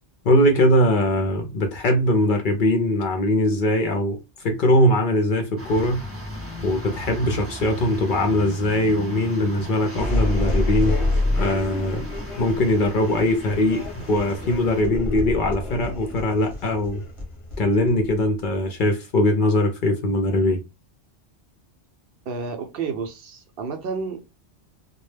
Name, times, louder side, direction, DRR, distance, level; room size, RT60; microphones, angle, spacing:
voice 1, 0.2-6.0 6.6-11.0 11.4-12.1 12.4-17.0 17.6-20.6, left 1 dB, 60° left, 0.6 m, -21 dB
sound 1, 5.6-14.8, left 1 dB, 15° right, 0.6 m, -36 dB
sound 2, 9.9-18.6, left 1 dB, 30° left, 0.8 m, -27 dB
voice 2, 22.3-24.2, right 5 dB, 65° right, 0.7 m, -30 dB
2.2 x 2.0 x 3.1 m
omnidirectional pair, 1.1 m